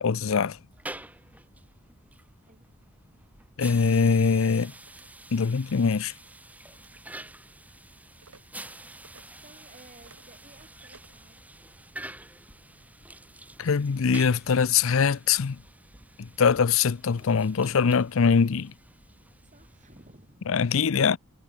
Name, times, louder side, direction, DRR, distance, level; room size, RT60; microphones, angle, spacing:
voice 1, 0.0-0.6 3.6-4.6 5.3-6.1 13.6-15.6 16.2-18.7 20.5-21.2, left 6 dB, 65° left, 0.5 m, -23 dB
sound 1, 0.7-20.3, right 1 dB, 5° right, 6.0 m, -48 dB
sound 2, 3.9-4.0 4.8-5.1 5.8-6.0 6.7-7.0 8.2-8.4 9.0-9.2 9.9-10.3 10.9-11.2, right 4 dB, 90° right, 4.2 m, -55 dB
voice 2, 4.0-4.8 9.4-11.4 19.4-20.5, right 2 dB, 35° right, 7.1 m, -54 dB
head